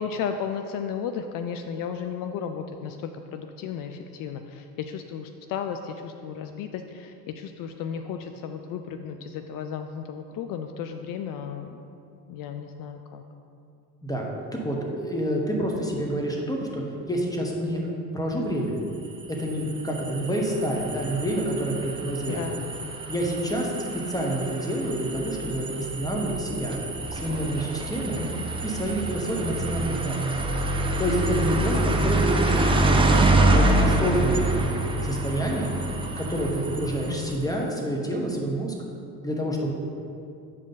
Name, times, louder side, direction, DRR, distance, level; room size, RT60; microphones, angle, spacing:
voice 1, 0.0-11.8 12.3-13.2 18.6-18.7 22.3-23.0 28.1-28.5 31.6-32.1 37.1-37.4, left 7 dB, 45° left, 7 dB, 0.4 m, -34 dB
voice 2, 14.5-18.8 19.3-22.4 23.1-23.7 24.1-26.8 27.1-28.2 28.6-30.2 31.0-33.2 33.5-34.7 35.0-35.8 36.2-38.7 39.2-39.7, right 1 dB, 5° left, -1 dB, 1.2 m, -28 dB
sound 1, 19.0-37.5, right 2 dB, 10° right, 0.6 m, -26 dB
7.3 x 5.1 x 4.0 m, 2.6 s
hypercardioid pair, 70°, 49 cm